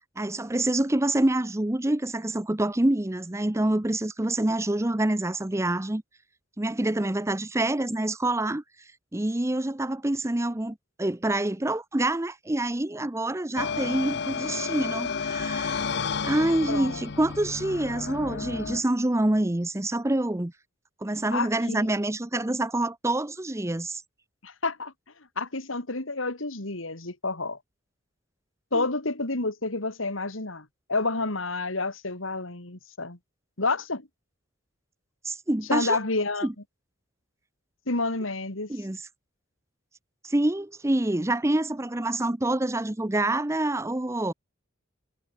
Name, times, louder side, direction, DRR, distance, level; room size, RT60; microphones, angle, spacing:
voice 1, 0.2-6.0 6.6-8.6 9.1-15.8 16.2-20.5 21.0-24.0 28.7-28.9 35.2-36.0 36.4-36.5 38.7-39.0 40.2-44.3, right 1 dB, 15° right, 0.7 m, -26 dB
sound 1, 13.6-18.8, left 5 dB, 60° left, 0.7 m, -31 dB
voice 2, 16.7-17.0 21.3-21.8 24.4-24.9 25.4-27.6 28.7-33.2 33.6-34.1 35.7-36.5 37.9-38.7, left 3 dB, 90° left, 3.2 m, -29 dB
head